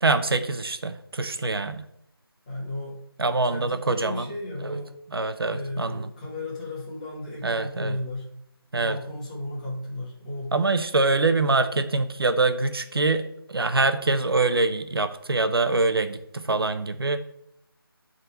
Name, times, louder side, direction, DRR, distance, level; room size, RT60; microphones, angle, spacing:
voice 1, 0.0-1.9 3.2-4.2 4.6-4.7 5.1-6.1 7.4-7.9 8.7-9.0 10.5-17.2, right 3 dB, 70° right, 9 dB, 0.8 m, -24 dB
voice 2, 2.5-3.0 3.4-4.9 5.5-8.3 8.7-10.5, left 1 dB, 20° left, -5 dB, 2.0 m, -34 dB
9.7 x 4.1 x 4.6 m, 0.78 s
figure-of-eight pair, 170°, 13 cm